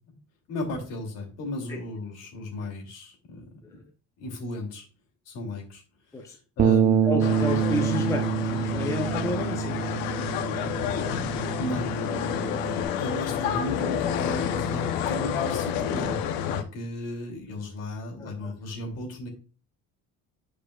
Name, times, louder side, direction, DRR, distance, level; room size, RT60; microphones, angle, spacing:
voice 1, 0.5-3.4 3.7-3.8 4.2-4.8 5.2-5.8 6.1-7.2 11.6-11.9 12.6-19.3, left 1 dB, 50° left, 0 dB, 2.8 m, -35 dB
Bass guitar, 6.6-12.8, right 8 dB, 30° right, 0.5 m, -26 dB
voice 2, 7.0-9.9 13.4-13.5 18.2-18.5, left 1 dB, 10° left, 1 dB, 0.7 m, -31 dB
sound 1, 7.2-16.6, left 9 dB, 85° left, 0.9 m, -29 dB
10.5 x 5.1 x 2.4 m, 0.37 s
cardioid pair, 155°, 32 cm